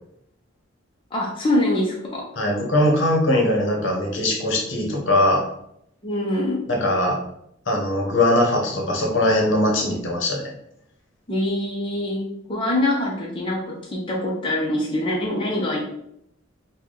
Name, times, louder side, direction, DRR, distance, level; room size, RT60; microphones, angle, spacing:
voice 1, 1.1-2.3 6.0-6.6 11.3-12.2 12.5-15.8, left 1 dB, 25° left, -3 dB, 0.6 m, -24 dB
voice 2, 2.4-5.5 6.7-7.2 7.7-10.4, left 1 dB, 65° left, -1 dB, 0.9 m, -21 dB
3.8 x 2.2 x 3.2 m, 0.75 s
head